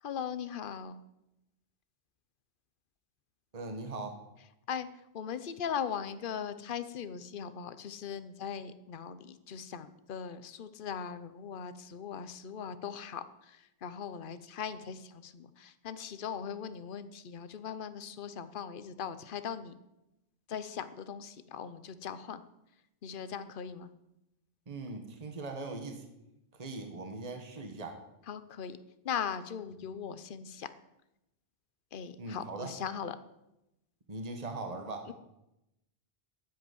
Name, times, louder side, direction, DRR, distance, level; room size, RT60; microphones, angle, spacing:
voice 1, 0.0-1.0 4.7-4.9 5.1-19.7 20.5-22.4 23.0-23.9 28.3-28.8 29.0-30.7 31.9-33.2 35.1-35.2, left 7 dB, 55° left, 12 dB, 0.9 m, -39 dB
voice 2, 3.5-4.2 24.7-26.0 26.5-28.0 32.2-32.8 34.1-35.1, right 3 dB, 35° right, 5 dB, 1.5 m, -40 dB
10.5 x 7.9 x 9.4 m, 0.90 s
omnidirectional pair, 1.1 m